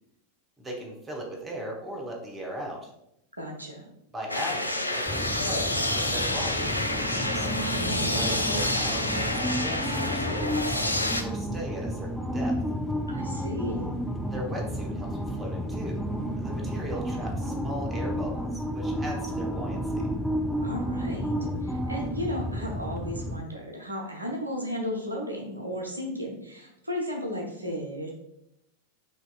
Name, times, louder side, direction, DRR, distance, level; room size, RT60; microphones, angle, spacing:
voice 1, 0.6-2.9 4.1-7.5 8.1-12.5 14.2-16.0 16.3-20.1, right 1 dB, 15° right, 0 dB, 1.0 m, -38 dB
voice 2, 3.3-3.9 7.8-8.2 13.1-14.1 20.6-21.3 21.6-28.1, equal, 80° right, 1 dB, 0.7 m, -34 dB
sound 1, 4.3-11.2, left 1 dB, 85° left, 0.3 m, -28 dB
sound 2, 5.1-23.4, equal, ahead, 0.3 m, -31 dB
5.9 x 2.8 x 2.3 m, 0.82 s
figure-of-eight pair, 90°, 0 cm